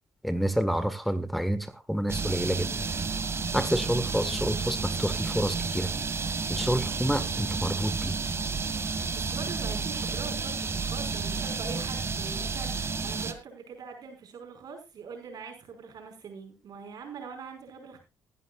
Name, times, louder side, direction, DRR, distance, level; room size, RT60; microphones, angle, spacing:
voice 1, 0.2-2.8 3.5-5.9 6.5-8.2, equal, ahead, 10 dB, 1.5 m, -28 dB
sound 1, 2.1-13.3, right 4 dB, 35° right, 2.0 m, -31 dB
voice 2, 9.1-18.0, right 5 dB, 60° right, 5 dB, 5.3 m, -43 dB
20.0 x 11.0 x 2.4 m, 0.26 s
supercardioid pair, 60°, 7 cm